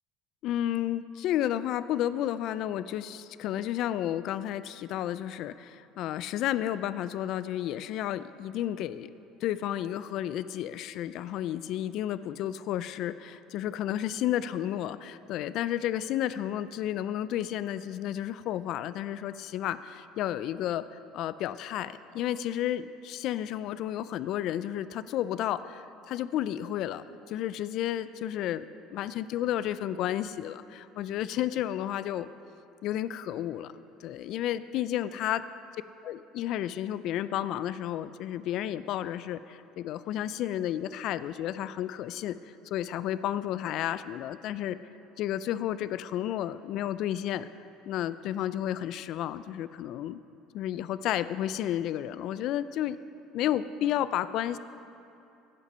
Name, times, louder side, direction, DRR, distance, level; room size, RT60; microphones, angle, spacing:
voice 1, 0.4-9.1 9.4-32.3 32.8-35.4 36.0-44.8 45.2-47.5 47.9-50.2 50.5-53.0 53.3-54.6, left 12 dB, 55° left, 15 dB, 0.3 m, -32 dB
14.5 x 8.2 x 5.5 m, 2.7 s
cardioid pair, 150°, 0 cm